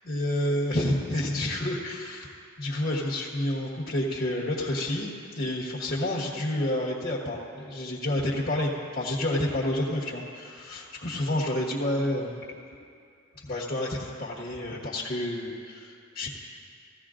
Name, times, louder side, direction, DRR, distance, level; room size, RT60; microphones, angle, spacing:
voice 1, 0.1-2.3 2.6-12.6 13.3-16.3, left 1 dB, 50° left, -5 dB, 1.5 m, -29 dB
17.0 x 15.0 x 2.5 m, 2.3 s
head